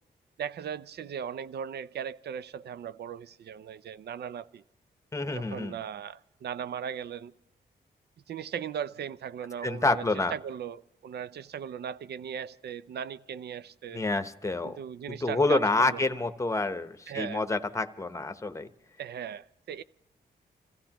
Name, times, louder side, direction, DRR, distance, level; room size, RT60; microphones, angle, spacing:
voice 1, 0.4-4.6 5.3-7.3 8.3-10.0 10.3-14.0 14.6-16.0 17.1-17.4 19.0-19.8, right 8 dB, 70° right, 0.5 m, -38 dB
voice 2, 5.1-5.8 9.6-10.3 13.9-14.8 15.1-18.7, left 3 dB, 15° left, 0.9 m, -28 dB
28.0 x 15.5 x 2.9 m
wide cardioid pair, 110°, 18 cm